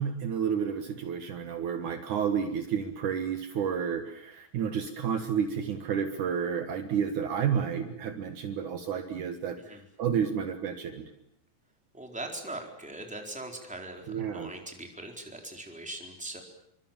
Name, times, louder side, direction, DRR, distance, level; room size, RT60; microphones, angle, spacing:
voice 1, 0.0-9.6 10.0-11.1 14.1-14.5, right 7 dB, 65° right, 7 dB, 2.8 m, -30 dB
voice 2, 11.9-16.4, right 2 dB, ahead, 2 dB, 3.9 m, -41 dB
28.0 x 24.5 x 7.3 m, 0.72 s
omnidirectional pair, 4.1 m